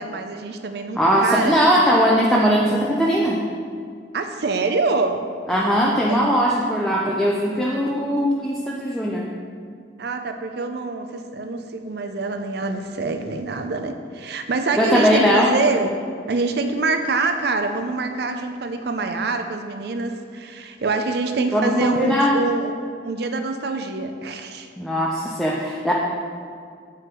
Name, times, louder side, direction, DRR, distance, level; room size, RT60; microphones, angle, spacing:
voice 1, 0.0-1.6 4.1-5.2 6.1-6.2 10.0-15.9 16.3-22.8 23.0-24.7, right 3 dB, 60° right, 7 dB, 0.5 m, -25 dB
voice 2, 1.0-3.4 5.5-9.3 14.8-15.5 21.5-22.4 24.8-25.9, equal, ahead, -4 dB, 0.5 m, -19 dB
7.7 x 4.8 x 4.5 m, 2.2 s
head